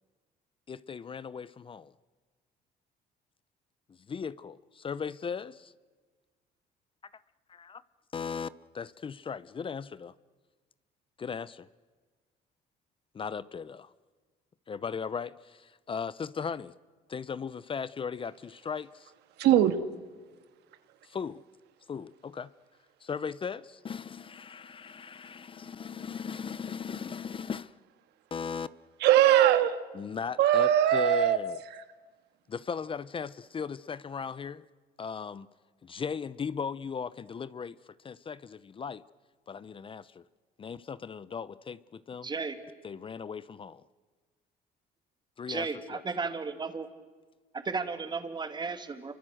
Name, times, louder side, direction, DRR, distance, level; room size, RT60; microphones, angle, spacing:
voice 1, 0.7-1.9 4.1-5.7 7.5-7.8 8.1-8.5 8.7-10.1 11.2-11.7 13.1-13.9 14.7-16.7 17.1-19.1 21.0-21.4 21.9-22.5 23.0-27.8 28.3-28.7 29.9-31.6 32.5-34.6 35.0-35.5 35.8-37.8 38.0-39.0 39.5-40.2 40.6-42.3 42.8-43.8 45.4-46.0, left 6 dB, 30° left, 0.7 m, -37 dB
voice 2, 19.4-19.8 29.0-29.8 30.4-31.4, right 11 dB, 85° right, 1.7 m, -21 dB
voice 3, 42.2-42.6 45.5-46.9 47.5-49.1, right 4 dB, 25° right, 2.4 m, -34 dB
27.5 x 24.0 x 7.8 m
cardioid pair, 110°, 17 cm